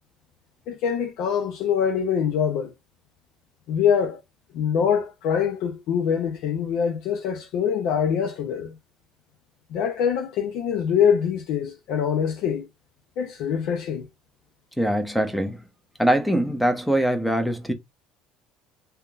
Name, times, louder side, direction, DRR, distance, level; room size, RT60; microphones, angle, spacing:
voice 1, 0.7-2.7 3.7-4.2 4.5-8.7 9.7-12.7 13.2-14.1, left 7 dB, 70° left, 0.6 m, -24 dB
voice 2, 14.8-15.6 16.0-17.7, right 1 dB, 5° left, 0.7 m, -22 dB
3.5 x 2.8 x 2.4 m
cardioid pair, 120°, 0 cm